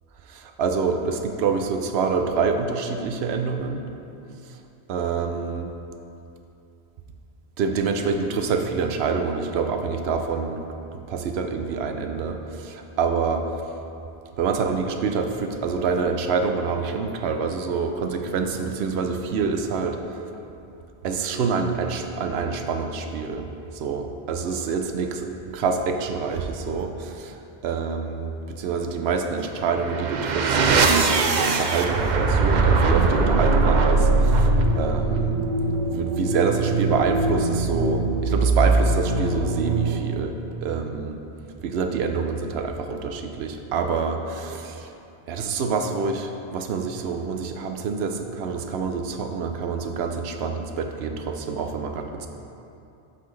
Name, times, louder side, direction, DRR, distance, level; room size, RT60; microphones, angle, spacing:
voice 1, 0.3-3.9 4.9-5.7 7.6-10.6 10.9-13.6 14.4-20.0 21.0-23.5 23.7-35.4 35.9-41.2 41.6-44.9 45.3-52.3, right 5 dB, 85° right, 5 dB, 0.9 m, -26 dB
sound 1, 29.6-40.3, right 3 dB, 55° right, 0.6 m, -21 dB
12.5 x 4.1 x 3.2 m, 2.7 s
omnidirectional pair, 1.0 m